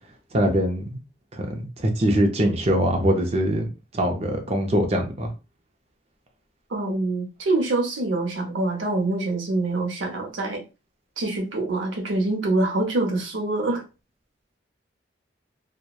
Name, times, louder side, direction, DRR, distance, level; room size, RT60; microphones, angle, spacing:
voice 1, 0.3-1.0 1.3-5.3, equal, 35° right, 0.5 m, -23 dB
voice 2, 6.7-10.6 11.2-13.8, right 2 dB, 85° right, 0.7 m, -25 dB
2.9 x 2.1 x 2.3 m
head